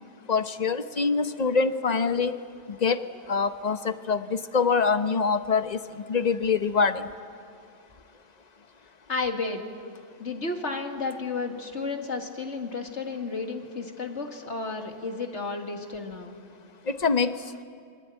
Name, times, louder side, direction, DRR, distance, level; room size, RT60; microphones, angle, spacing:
voice 1, 0.3-2.4 2.7-5.8 6.1-7.1 16.9-17.4, left 5 dB, 40° left, 11 dB, 1.0 m, -25 dB
voice 2, 9.1-9.7 10.2-16.4, left 3 dB, 80° left, 4 dB, 2.4 m, -32 dB
28.0 x 23.5 x 9.2 m, 2.3 s
omnidirectional pair, 1.2 m